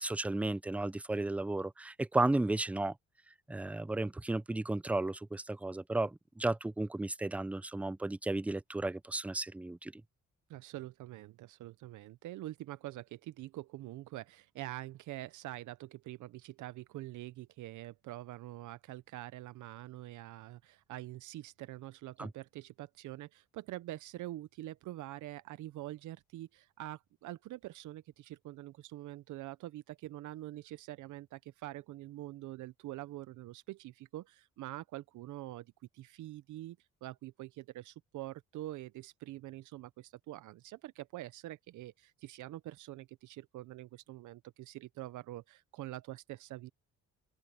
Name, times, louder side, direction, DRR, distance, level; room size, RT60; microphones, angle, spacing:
voice 1, 0.0-2.9 3.5-9.9 22.2-22.3, right 2 dB, 5° right, 0.4 m, -34 dB
voice 2, 10.5-46.7, right 16 dB, 80° right, 0.6 m, -45 dB
open air
cardioid pair, 90°, 30 cm